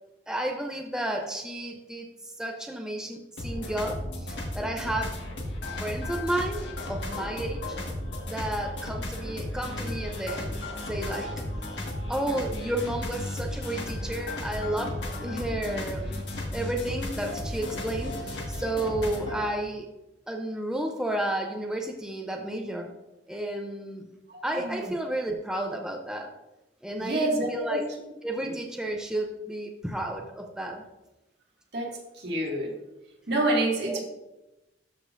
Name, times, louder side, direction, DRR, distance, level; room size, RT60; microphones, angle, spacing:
voice 1, 0.3-5.2 5.8-7.8 8.3-10.6 10.9-11.3 11.7-16.2 16.5-19.9 20.3-22.9 23.3-24.1 24.4-26.3 26.8-27.8 28.2-30.8 33.9-34.0, right 1 dB, 5° right, 2 dB, 0.6 m, -32 dB
sound 1, 3.4-19.4, left 1 dB, 85° left, 1.7 m, -34 dB
voice 2, 24.3-24.9 27.0-27.8 31.7-31.9 32.2-32.7 33.3-34.0, right 1 dB, 70° right, -2 dB, 2.0 m, -27 dB
13.0 x 5.3 x 2.6 m, 0.96 s
head